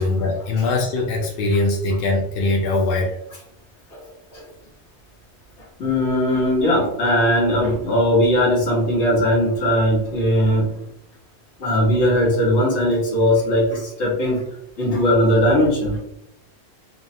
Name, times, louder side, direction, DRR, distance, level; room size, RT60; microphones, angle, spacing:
voice 1, 0.0-3.2, left 2 dB, 65° left, 0 dB, 0.7 m, -21 dB
voice 2, 5.8-10.7 11.6-14.4 14.8-16.0, equal, 85° left, -4 dB, 1.4 m, -19 dB
3.4 x 2.0 x 2.6 m, 0.76 s
omnidirectional pair, 1.1 m